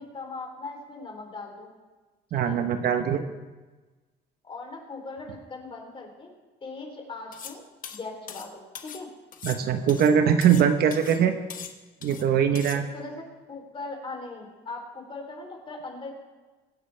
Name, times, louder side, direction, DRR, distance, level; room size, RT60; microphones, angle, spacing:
voice 1, 0.0-1.7 2.3-2.6 4.4-6.3 6.6-9.1 12.9-16.1, left 3 dB, 30° left, 1 dB, 3.7 m, -39 dB
voice 2, 2.3-3.2 9.4-11.3 12.0-12.9, right 8 dB, 65° right, 7 dB, 1.2 m, -22 dB
sound 1, 7.3-7.6 7.8-9.0 9.3-10.7 10.9-11.2 11.5-12.3 12.6-12.8, left 8 dB, 55° left, 1.2 m, -41 dB
24.0 x 9.5 x 3.5 m, 1.3 s
cardioid pair, 110°, 17 cm